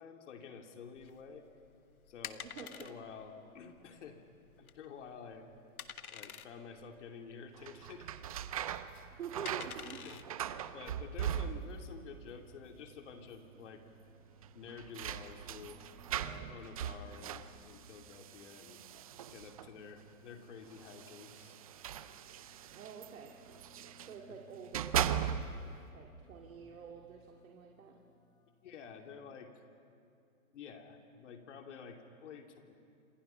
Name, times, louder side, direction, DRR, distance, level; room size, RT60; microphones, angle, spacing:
voice 1, 0.0-1.4 2.1-4.2 4.6-5.5 6.1-8.2 9.4-9.6 9.8-10.2 10.5-13.8 14.5-18.8 19.3-21.6 28.6-29.6 30.5-32.7, left 6 dB, 55° left, 4 dB, 2.9 m, -50 dB
sound 1, 1.0-11.6, left 8 dB, 85° left, 1.4 m, -50 dB
voice 2, 2.4-3.0 9.2-10.0 22.7-23.3 24.0-25.1 25.9-28.0, right 6 dB, 70° right, 1 dB, 2.4 m, -47 dB
sound 2, 7.6-12.0 12.2-12.9 13.2-13.3 14.4-19.8 20.7-24.2 24.6-25.8, right 9 dB, 25° right, 0.5 m, -39 dB
sound 3, 9.3-29.1, left 3 dB, 10° left, 1.3 m, -67 dB
28.5 x 27.0 x 5.7 m, 2.5 s
hypercardioid pair, 150°, 43 cm